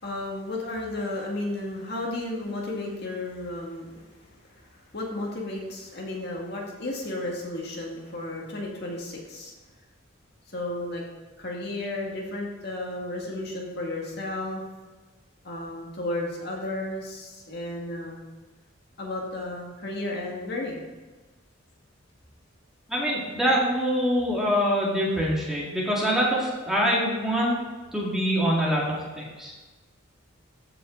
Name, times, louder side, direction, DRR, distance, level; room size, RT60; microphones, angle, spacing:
voice 1, 0.0-9.5 10.5-11.0 11.4-14.6 15.4-18.2 19.0-20.8, left 2 dB, 50° left, -2 dB, 1.9 m, -33 dB
voice 2, 22.9-27.5 27.9-29.5, equal, ahead, -5 dB, 2.1 m, -24 dB
14.5 x 5.9 x 3.9 m, 1.3 s
head